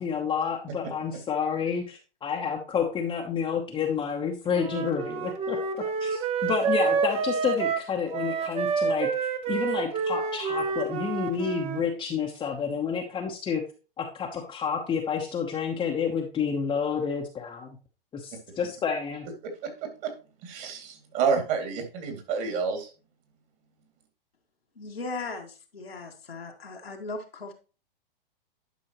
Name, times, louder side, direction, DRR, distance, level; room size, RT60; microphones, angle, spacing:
voice 1, 0.0-5.6 6.0-9.1 9.5-13.6 14.0-17.8 18.1-19.3, left 6 dB, 15° left, 0 dB, 0.9 m, -29 dB
Wind instrument woodwind instrument, 4.5-11.8, right 5 dB, 20° right, 0.8 m, -28 dB
voice 2, 20.4-22.9, right 5 dB, 40° right, 5 dB, 2.5 m, -28 dB
voice 3, 24.8-27.5, left 3 dB, 90° left, 1 dB, 1.9 m, -37 dB
11.0 x 5.5 x 3.0 m, 0.34 s
hypercardioid pair, 120°, 29 cm